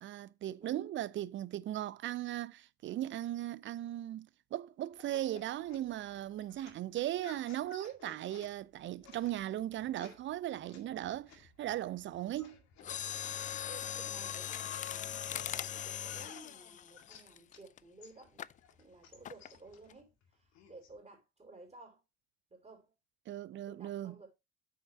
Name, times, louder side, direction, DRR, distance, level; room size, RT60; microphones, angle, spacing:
voice 1, 0.0-12.6 23.3-24.2, right 13 dB, 35° right, 0.5 m, -38 dB
sound 1, 4.9-15.1 15.5-17.7 18.0-21.0, left 7 dB, 55° left, 2.2 m, -58 dB
Mechanisms, 12.8-17.8 18.4-18.6 19.2-19.6 19.9-20.0, left 10 dB, 25° left, 0.3 m, -40 dB
voice 2, 13.4-18.4 18.8-22.0 22.5-22.9 23.7-24.3, right 3 dB, 20° right, 4.6 m, -55 dB
8.6 x 6.5 x 2.8 m
figure-of-eight pair, 55°, 32 cm